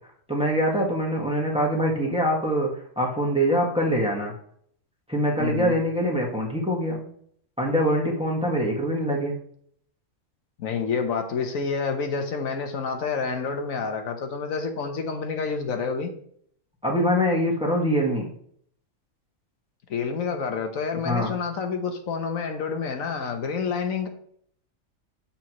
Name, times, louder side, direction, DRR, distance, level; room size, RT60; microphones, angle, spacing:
voice 1, 0.3-4.3 5.1-7.1 7.6-9.4 16.8-18.3 21.0-21.3, equal, 5° right, -2 dB, 1.3 m, -24 dB
voice 2, 5.4-5.8 10.6-16.1 19.9-24.1, left 5 dB, 80° left, 5 dB, 1.4 m, -28 dB
7.8 x 7.1 x 3.0 m, 0.63 s
omnidirectional pair, 1.4 m